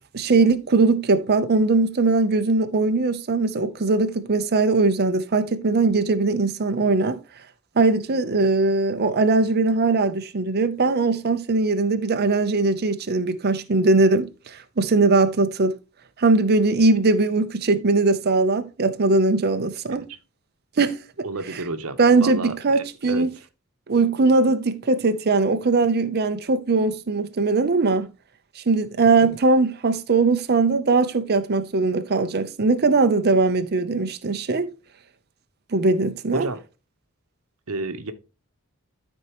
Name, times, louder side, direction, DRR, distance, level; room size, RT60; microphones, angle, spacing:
voice 1, 0.1-7.2 7.8-15.7 16.2-20.0 20.8-21.0 22.0-23.3 23.9-28.1 28.6-34.7 35.7-36.5, right 3 dB, 45° right, 0.7 m, -20 dB
voice 2, 21.2-23.3 36.3-36.6 37.7-38.1, right 2 dB, 75° right, 1.0 m, -31 dB
12.5 x 4.4 x 3.0 m
head